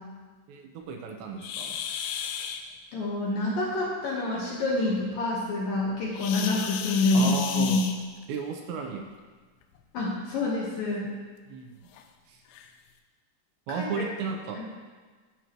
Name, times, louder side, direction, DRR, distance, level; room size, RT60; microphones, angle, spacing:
voice 1, 0.5-1.8 7.1-7.8 8.3-9.0 11.5-11.7 12.3-12.4 13.7-14.6, right 5 dB, 80° right, 3 dB, 3.0 m, -34 dB
sound 1, 1.4-2.6 6.1-8.4 9.6-9.8 10.4-10.5 11.0-11.1 11.9-12.0 12.5-12.7, left 8 dB, 80° left, 2.7 m, -34 dB
voice 2, 2.9-7.8 9.9-11.1 13.7-14.0, left 2 dB, 65° left, -5 dB, 2.5 m, -27 dB
15.5 x 6.4 x 3.1 m, 1.4 s
omnidirectional pair, 5.3 m